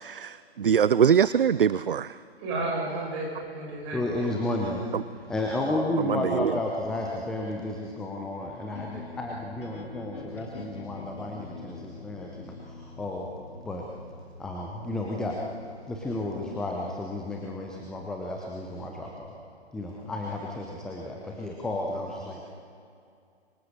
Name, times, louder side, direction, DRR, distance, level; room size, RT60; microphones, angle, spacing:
voice 1, 0.0-2.1 6.1-6.5, right 8 dB, 55° right, 17 dB, 0.5 m, -23 dB
voice 2, 2.4-4.3, right 2 dB, 25° right, -2 dB, 7.0 m, -32 dB
voice 3, 3.9-4.8 5.1-13.3 13.6-13.9 14.4-15.4 15.9-19.4 19.7-22.4, left 1 dB, ahead, -1 dB, 0.7 m, -32 dB
sound 1, 8.7-18.8, left 4 dB, 55° left, 2.9 m, -46 dB
26.5 x 24.0 x 6.6 m, 2.4 s
figure-of-eight pair, 135°, 33 cm